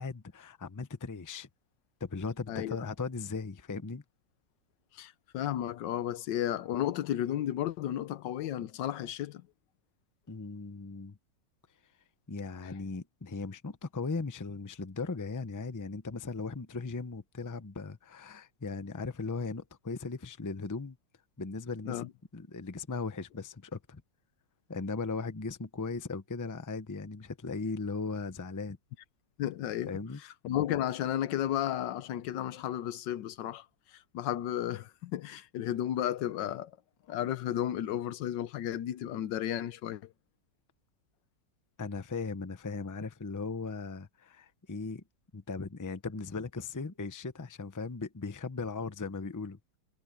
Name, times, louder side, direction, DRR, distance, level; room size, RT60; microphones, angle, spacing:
voice 1, 0.0-1.5 2.0-4.0 10.3-11.2 12.3-21.0 21.4-22.0 22.3-24.0 24.7-28.8 29.9-30.2 41.8-45.0 45.3-49.6, left 4 dB, 20° left, 0.5 m, -38 dB
voice 2, 4.9-9.5 12.6-12.7 21.9-22.1 29.4-30.0 30.4-36.7 37.1-40.1, left 11 dB, 90° left, 1.5 m, -33 dB
omnidirectional pair, 1.9 m